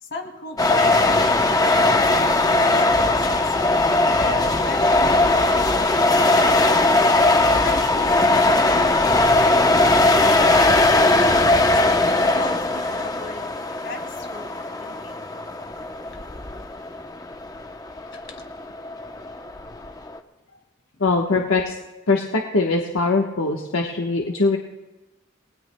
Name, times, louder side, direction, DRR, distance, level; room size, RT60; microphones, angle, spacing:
voice 1, 0.0-3.5 4.2-6.7 7.5-10.8 11.7-13.4 13.8-15.2 18.1-18.5, left 3 dB, 60° left, 2 dB, 2.5 m, -35 dB
sound 1, 0.6-20.2, left 2 dB, 20° left, 0.7 m, -19 dB
voice 2, 21.0-21.7 22.1-24.6, left 3 dB, 80° left, 0 dB, 1.1 m, -21 dB
29.5 x 19.5 x 2.2 m, 1.1 s
head